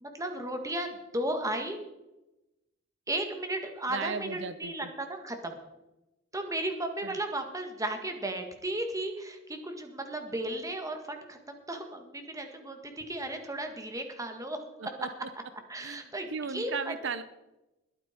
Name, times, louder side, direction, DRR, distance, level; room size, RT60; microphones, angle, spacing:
voice 1, 0.0-1.8 3.1-5.6 6.3-14.6 15.7-16.9, right 1 dB, 15° right, 5 dB, 1.8 m, -35 dB
voice 2, 3.9-4.9 7.0-7.2 14.8-15.3 15.8-16.0 16.3-17.2, right 5 dB, 65° right, 12 dB, 0.7 m, -36 dB
21.0 x 9.1 x 4.4 m, 0.97 s
head